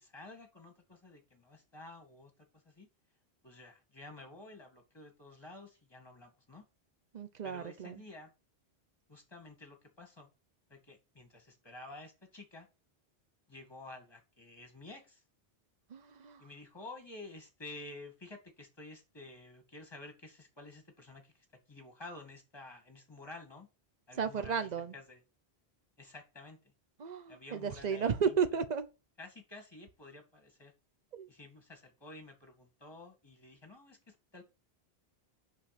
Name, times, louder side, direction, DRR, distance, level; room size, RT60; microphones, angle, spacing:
voice 1, 0.0-2.3 2.6-2.9 3.4-6.6 7.4-8.3 9.1-10.3 10.7-12.7 13.5-15.2 16.4-23.7 24.1-25.2 26.0-26.7 27.3-28.4 29.2-30.7 31.3-34.4, left 2 dB, 25° left, 2.1 m, -51 dB
voice 2, 7.1-8.0 15.9-16.4 24.2-24.9 27.0-28.9 31.1-31.3, right 6 dB, 45° right, 0.9 m, -33 dB
6.3 x 6.1 x 6.0 m
omnidirectional pair, 1.1 m